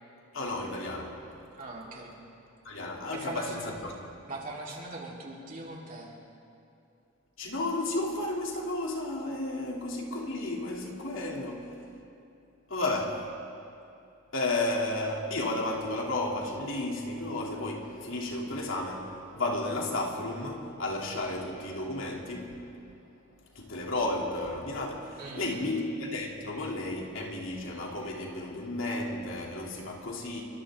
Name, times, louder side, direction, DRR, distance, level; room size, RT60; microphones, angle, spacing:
voice 1, 0.3-1.2 2.6-4.0 7.4-11.7 12.7-13.2 14.3-22.6 23.5-30.4, left 2 dB, 65° left, 3.0 m, -33 dB
voice 2, 1.6-2.1 3.1-3.7 4.3-6.2 25.2-25.7, right 2 dB, 40° right, 3.8 m, -41 dB
29.5 x 24.0 x 3.8 m
head